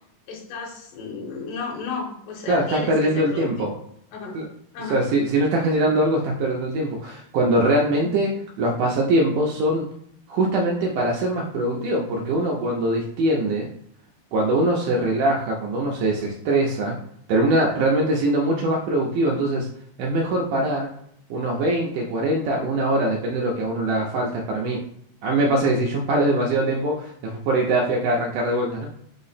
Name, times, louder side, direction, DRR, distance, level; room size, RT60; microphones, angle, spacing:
voice 1, 0.3-3.8 4.1-4.3 4.7-5.0 7.9-8.2, left 4 dB, 75° left, -2 dB, 2.4 m, -33 dB
voice 2, 2.5-3.7 4.3-4.5 4.9-8.3 8.6-9.9 10.3-13.7 14.3-17.0 17.3-19.7 20.0-20.9 21.3-24.8 25.2-28.9, right 1 dB, 85° right, -2 dB, 1.9 m, -22 dB
5.6 x 2.0 x 4.0 m, 0.68 s
omnidirectional pair, 4.2 m